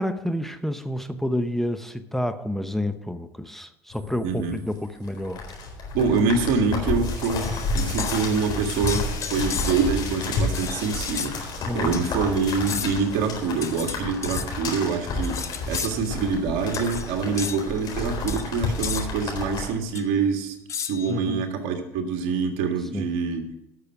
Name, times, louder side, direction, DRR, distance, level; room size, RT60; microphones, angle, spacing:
voice 1, 0.0-5.4 11.7-11.9 21.1-21.5 22.9-23.1, equal, 5° left, 9 dB, 0.8 m, -29 dB
sound 1, 3.9-19.7, left 3 dB, 55° left, 4.2 m, -30 dB
voice 2, 4.2-4.6 5.9-15.4 15.7-20.6 20.9-23.5, right 5 dB, 70° right, 4 dB, 1.9 m, -25 dB
sound 2, 7.2-8.3 8.9-10.0 10.5-11.3 11.9-12.1 12.7-13.1 13.6-14.5 15.2-16.0 16.7-17.1 17.4-17.6 18.3-18.4 18.8-19.1 19.9-20.0 20.7-21.2, left 7 dB, 35° left, 0.8 m, -33 dB
sound 3, 7.7-14.2, left 2 dB, 70° left, 4.4 m, -44 dB
12.5 x 6.7 x 6.0 m, 0.85 s
supercardioid pair, 85°, 9 cm